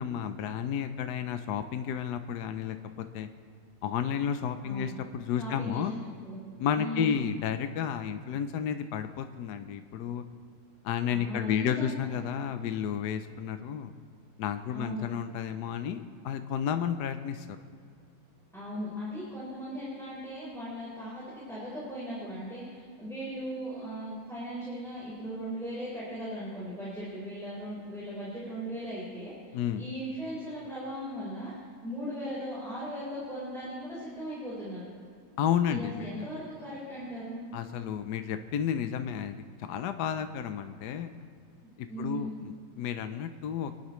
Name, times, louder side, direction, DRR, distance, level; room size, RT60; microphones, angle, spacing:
voice 1, 0.0-3.3 3.8-5.9 6.6-10.2 10.8-13.9 14.4-17.6 29.5-29.8 35.4-36.2 37.5-41.1 41.8-43.7, left 8 dB, 70° left, 8 dB, 1.2 m, -32 dB
voice 2, 4.6-4.9 5.4-5.9 6.2-6.4 6.8-7.2 11.1-12.0 14.7-15.1 18.5-31.5 31.8-34.9 35.7-37.5 41.6-42.4, equal, ahead, -9 dB, 3.9 m, -38 dB
25.5 x 11.5 x 3.1 m, 2.2 s
omnidirectional pair, 2.0 m